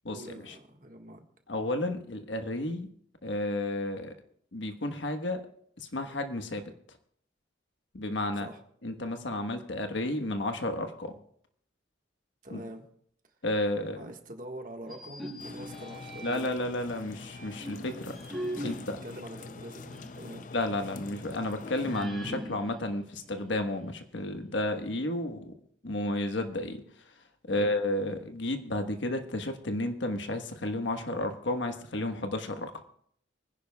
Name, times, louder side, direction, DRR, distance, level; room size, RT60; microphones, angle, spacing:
voice 1, 0.1-1.2 8.4-8.6 12.4-12.8 13.9-16.5 18.4-18.7 19.0-20.4 27.5-27.7, right 1 dB, 45° right, 3 dB, 1.6 m, -44 dB
voice 2, 1.5-2.9 3.2-4.1 4.5-5.4 5.8-6.6 7.9-8.5 8.8-11.1 12.5-12.6 13.4-14.0 16.2-18.1 18.6-19.0 20.5-25.5 25.8-26.8 27.5-32.7, left 1 dB, 80° left, 6 dB, 1.3 m, -32 dB
sound 1, 14.8-16.7 17.3-20.3 20.6-20.7 21.8-23.9, equal, ahead, 4.4 m, -41 dB
sound 2, 15.4-22.1, left 4 dB, 45° left, 0.5 m, -45 dB
24.5 x 10.5 x 2.3 m, 0.66 s
head